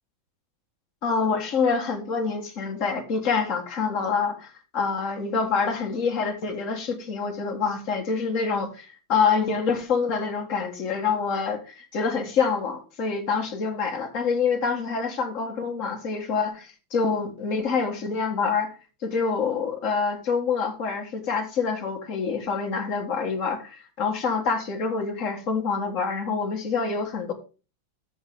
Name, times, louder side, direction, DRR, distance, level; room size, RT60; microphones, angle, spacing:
voice 1, 1.0-18.7 19.0-27.3, left 5 dB, 40° left, 1.9 m, -26 dB
12.5 x 6.5 x 3.8 m
omnidirectional pair, 2.3 m